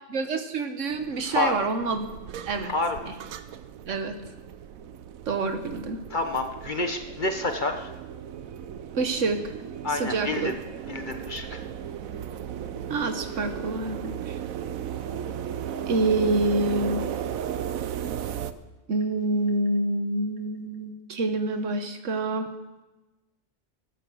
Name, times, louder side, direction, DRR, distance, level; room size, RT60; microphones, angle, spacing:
voice 1, 0.1-2.1 2.5-2.7 3.0-3.1 3.9-4.1 5.3-6.0 8.9-9.4 9.9-10.5 12.9-14.4 15.9-17.0 18.9-22.5, right 2 dB, 65° right, 8 dB, 1.4 m, -27 dB
sound 1, 0.9-18.5, right 9 dB, 85° right, 1.1 m, -36 dB
voice 2, 2.6-3.1 6.1-7.9 9.8-10.5 10.9-11.6, left 2 dB, 40° left, 6 dB, 1.1 m, -28 dB
13.0 x 9.9 x 7.6 m, 1.1 s
omnidirectional pair, 1.4 m